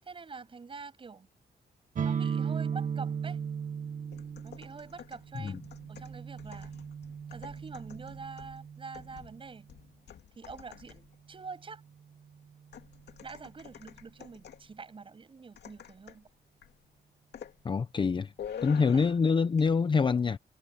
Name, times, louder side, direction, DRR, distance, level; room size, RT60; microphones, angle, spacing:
voice 1, 0.0-1.3 2.0-3.4 4.4-5.6 5.9-6.7 7.3-9.7 10.3-11.8 13.2-16.3 18.8-19.0, right 4 dB, 30° right, 7.7 m, -46 dB
sound 1, 1.9-9.6, right 7 dB, 45° right, 1.4 m, -36 dB
sound 2, 4.1-11.2 12.7-14.7 15.6-16.3 16.6-16.8 17.3-17.6 18.4-19.3 19.6-19.8, left 9 dB, 70° left, 2.3 m, -48 dB
voice 2, 17.6-18.3 18.6-20.4, left 5 dB, 25° left, 0.6 m, -26 dB
wide cardioid pair, 180°, 18 cm